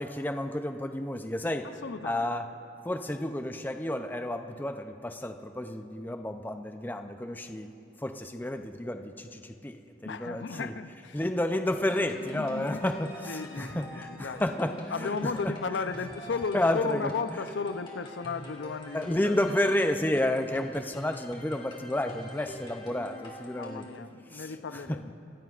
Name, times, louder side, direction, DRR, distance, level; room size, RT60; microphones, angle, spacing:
voice 1, 0.0-1.7 2.0-2.5 2.8-10.7 11.1-15.5 16.5-17.4 18.9-25.0, left 1 dB, 10° left, 7 dB, 0.5 m, -31 dB
voice 2, 1.8-2.3 10.0-11.2 12.3-12.9 13.3-14.4 14.9-19.4 23.5-25.1, left 5 dB, 90° left, 11 dB, 0.5 m, -35 dB
sound 1, 11.7-24.0, equal, 30° left, 2.0 m, -45 dB
27.0 x 15.0 x 2.5 m, 2.6 s
head